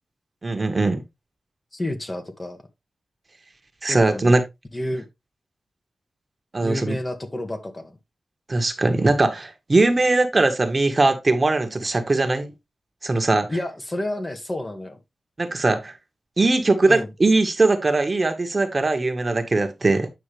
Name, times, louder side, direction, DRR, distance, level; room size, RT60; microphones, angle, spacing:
voice 1, 0.4-1.0 3.8-4.4 6.5-7.0 8.5-12.5 13.0-13.5 15.4-16.0 16.4-20.1, right 2 dB, 35° right, 1.4 m, -20 dB
voice 2, 1.7-2.6 3.9-4.4 4.7-5.0 6.6-8.0 13.5-15.0 16.9-17.1, left 1 dB, 25° left, 1.6 m, -30 dB
9.1 x 5.6 x 3.3 m
wide cardioid pair, 85°, 0 cm